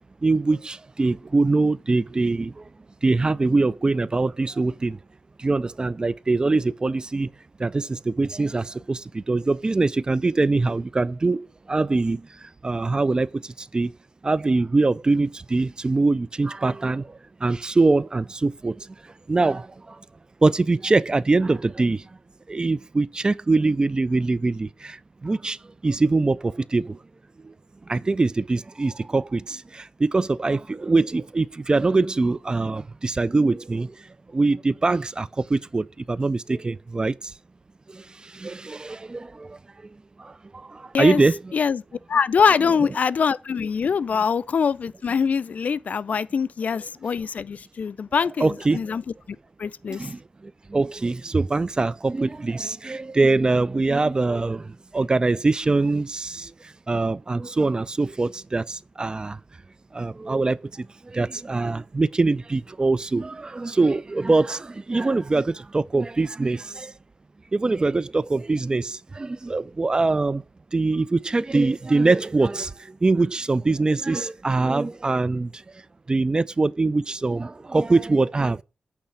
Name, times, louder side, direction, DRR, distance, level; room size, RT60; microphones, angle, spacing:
voice 1, 0.2-2.7 3.0-5.0 5.4-7.3 7.6-13.9 14.2-20.0 20.4-22.1 22.5-25.6 25.8-27.0 27.4-27.5 27.9-37.3 37.9-39.6 40.2-41.5 48.4-48.9 49.9-59.4 59.9-66.9 67.5-70.4 70.7-75.6 76.1-78.6, right 3 dB, 30° right, 0.3 m, -23 dB
voice 2, 41.5-41.8 42.1-49.0 49.6-50.1, left 6 dB, 60° left, 0.3 m, -23 dB
8.6 x 3.3 x 5.5 m
cardioid pair, 65°, 3 cm